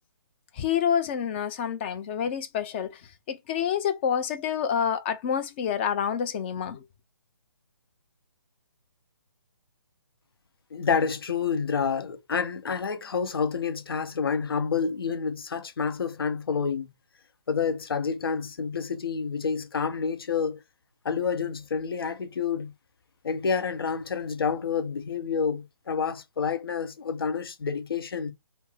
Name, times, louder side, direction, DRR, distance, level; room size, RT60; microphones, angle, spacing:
voice 1, 0.5-3.0 3.3-6.8, left 8 dB, 25° left, 0.6 m, -28 dB
voice 2, 10.7-16.9 17.5-20.6 21.0-22.7 23.2-28.3, left 6 dB, 65° left, 0.8 m, -28 dB
5.2 x 2.0 x 4.3 m
figure-of-eight pair, 145°, 13 cm